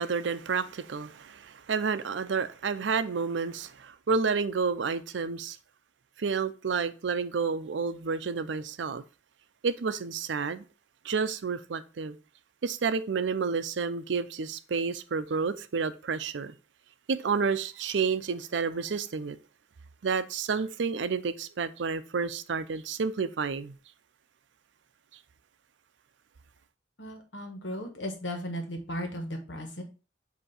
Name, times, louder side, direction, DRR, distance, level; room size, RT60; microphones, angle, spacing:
voice 1, 0.0-5.6 6.2-9.0 9.6-10.6 11.0-12.2 12.6-16.5 17.1-19.4 20.0-23.8, right 5 dB, 80° right, 0.5 m, -30 dB
voice 2, 27.0-29.8, equal, 90° left, 1.4 m, -36 dB
7.9 x 2.8 x 4.2 m
head